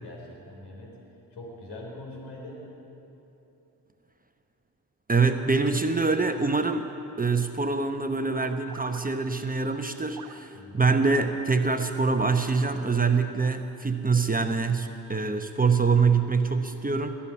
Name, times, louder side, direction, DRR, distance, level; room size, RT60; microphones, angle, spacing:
voice 1, 0.0-0.9 1.3-2.6 10.5-10.9, left 1 dB, 70° left, -1 dB, 4.3 m, -42 dB
voice 2, 5.1-6.9 7.2-17.2, right 4 dB, 20° right, 7 dB, 1.0 m, -25 dB
sound 1, 5.6-6.7 8.7-9.1 10.1-10.4 11.1-11.3 12.4-13.3, right 8 dB, 55° right, 1.1 m, -47 dB
20.5 x 7.3 x 9.7 m, 3.0 s
supercardioid pair, 55°, 42 cm